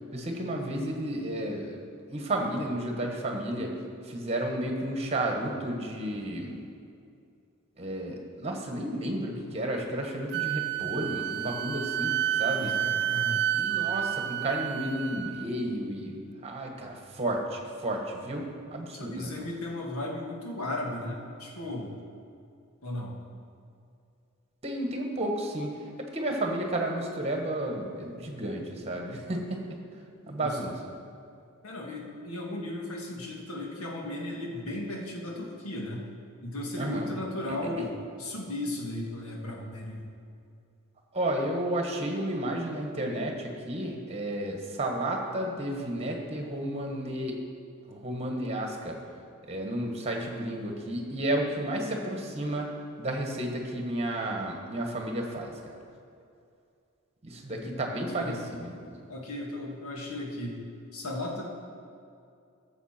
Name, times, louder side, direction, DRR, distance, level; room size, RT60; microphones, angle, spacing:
voice 1, 0.1-1.8 2.1-3.7 4.0-6.5 7.8-12.8 13.5-19.5 24.6-29.6 30.3-30.7 36.8-37.1 41.1-47.4 47.9-48.9 49.5-52.7 53.0-55.8 57.2-59.1, right 1 dB, 30° right, 1 dB, 1.4 m, -32 dB
Wind instrument woodwind instrument, 10.3-15.5, right 12 dB, 50° right, 0.3 m, -30 dB
voice 2, 12.6-13.4 18.9-21.9 22.8-23.1 30.2-30.8 31.6-36.0 36.4-40.0 57.6-58.4 59.1-60.7 60.9-61.4, left 1 dB, 75° left, -1 dB, 1.8 m, -36 dB
14.0 x 7.0 x 4.4 m, 2.4 s
head